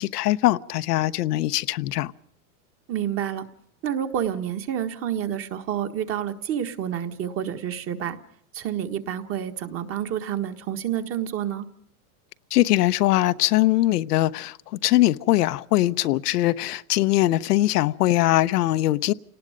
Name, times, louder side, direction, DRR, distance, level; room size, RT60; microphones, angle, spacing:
voice 1, 0.0-2.1 12.5-19.1, left 16 dB, 85° left, 1.0 m, -21 dB
voice 2, 2.9-3.5 3.8-8.2 8.5-11.7, right 9 dB, 30° right, 1.6 m, -29 dB
29.5 x 19.0 x 5.1 m
supercardioid pair, 160°, 46 cm